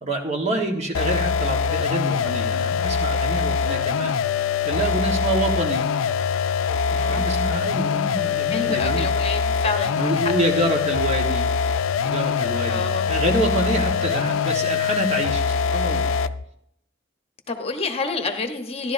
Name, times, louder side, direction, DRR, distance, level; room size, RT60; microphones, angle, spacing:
voice 1, 0.0-4.1 4.6-5.9 6.9-9.1 10.0-11.5 12.0-16.2, right 1 dB, 35° right, 2 dB, 1.5 m, -27 dB
sound 1, 0.9-16.4, left 6 dB, 80° left, 0.4 m, -23 dB
voice 2, 8.5-10.2 12.7-13.1 17.5-18.9, left 3 dB, 30° left, 5 dB, 1.1 m, -28 dB
15.0 x 11.5 x 2.7 m, 0.76 s
head